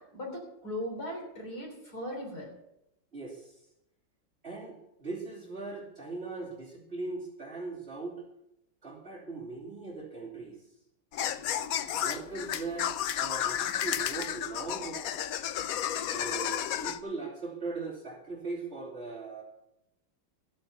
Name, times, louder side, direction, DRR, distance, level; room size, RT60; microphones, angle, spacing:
voice 1, 0.0-2.5, left 1 dB, 50° left, 0 dB, 3.8 m, -38 dB
voice 2, 3.1-3.5 4.4-8.2 8.8-10.6 12.0-12.9 13.1-15.2 16.1-19.4, right 3 dB, 30° right, -5 dB, 3.2 m, -39 dB
sound 1, 11.1-17.0, left 10 dB, 85° left, 0.7 m, -32 dB
14.0 x 9.0 x 5.7 m, 0.83 s
omnidirectional pair, 2.2 m